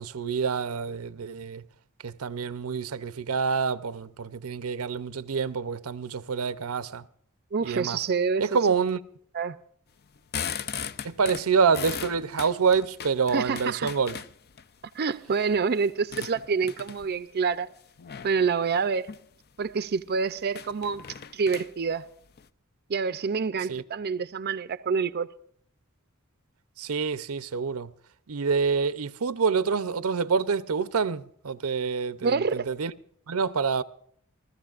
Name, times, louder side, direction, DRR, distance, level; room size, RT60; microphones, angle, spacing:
voice 1, 0.0-1.6 2.0-7.0 7.6-8.0 8.4-9.0 11.0-14.2 23.7-23.8 26.8-27.9 28.3-32.9 33.3-33.8, right 5 dB, 90° right, 0.7 m, -27 dB
voice 2, 7.5-8.4 9.3-9.6 13.3-13.9 15.0-17.7 18.2-19.1 19.6-21.0 21.3-22.1 22.9-25.3 32.2-32.7, right 5 dB, 45° right, 0.5 m, -27 dB
sound 1, 10.0-14.6 15.2-17.2 18.0-18.4 18.9-19.3 19.6-19.7 20.0-20.1 20.5-22.5, left 7 dB, 45° left, 0.5 m, -38 dB
30.0 x 13.5 x 2.5 m
head